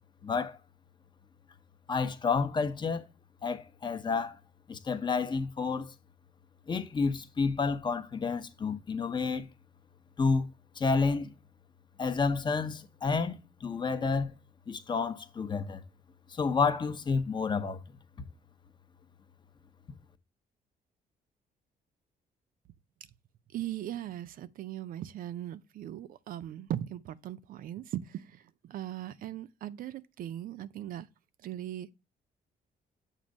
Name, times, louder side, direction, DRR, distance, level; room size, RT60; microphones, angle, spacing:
voice 1, 0.2-0.6 1.9-3.1 3.4-4.4 4.7-5.9 6.7-9.5 10.2-10.5 10.8-11.3 12.0-14.3 14.7-15.8 16.3-17.8, left 4 dB, 30° left, 0.6 m, -30 dB
voice 2, 23.5-28.2 28.6-31.1 31.4-31.9, right 12 dB, 60° right, 0.4 m, -39 dB
7.4 x 2.6 x 5.1 m
cardioid pair, 125°, 16 cm